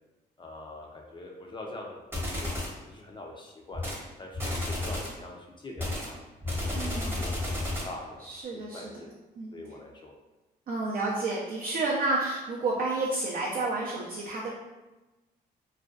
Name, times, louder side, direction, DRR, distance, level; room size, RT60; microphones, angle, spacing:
voice 1, 0.4-2.1 2.4-3.9 4.2-6.1 6.4-9.1 9.5-10.2, left 2 dB, 25° left, 0 dB, 0.4 m, -44 dB
sound 1, 2.1-2.8 3.7-4.0 4.3-5.2 5.8-8.0, left 1 dB, 15° right, 0.8 m, -32 dB
voice 2, 6.7-7.2 8.2-8.9 9.4-9.6 10.7-14.5, right 2 dB, 55° right, -4 dB, 0.5 m, -30 dB
2.5 x 2.1 x 2.3 m, 1.1 s
cardioid pair, 85°, 18 cm